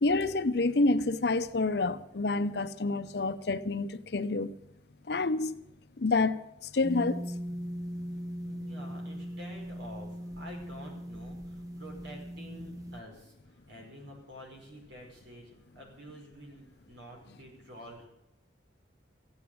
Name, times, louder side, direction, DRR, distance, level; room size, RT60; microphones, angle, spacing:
voice 1, 0.0-4.6 5.1-5.6 6.0-6.4 6.6-7.3, left 3 dB, 60° left, 0.7 m, -28 dB
sound 1, 6.8-13.0, equal, 20° right, 1.0 m, -39 dB
voice 2, 8.4-18.1, equal, 80° right, 5.3 m, -49 dB
15.0 x 8.7 x 9.4 m
head